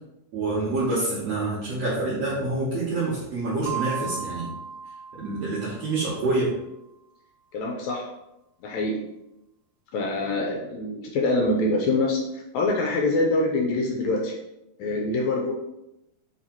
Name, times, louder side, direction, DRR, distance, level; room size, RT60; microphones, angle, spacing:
voice 1, 0.3-4.5 5.2-6.5, right 2 dB, 60° right, -8 dB, 2.0 m, -27 dB
sound 1, 3.7-6.2, right 7 dB, 80° right, 2.1 m, -35 dB
voice 2, 7.5-8.1 8.6-9.0 9.9-14.4 14.8-15.5, left 2 dB, 80° left, 0 dB, 1.7 m, -25 dB
7.0 x 3.2 x 4.4 m, 0.90 s
omnidirectional pair, 4.0 m